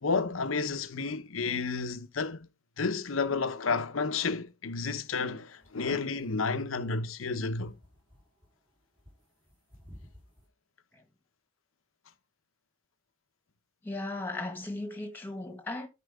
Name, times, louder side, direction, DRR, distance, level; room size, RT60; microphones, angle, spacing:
voice 1, 0.0-2.5 2.8-7.7, left 4 dB, 75° left, 0.8 m, -31 dB
sound 1, 5.5-10.5, equal, 25° right, 3.3 m, -54 dB
voice 2, 13.8-15.9, left 2 dB, 10° left, 1.6 m, -37 dB
13.0 x 4.6 x 3.5 m
head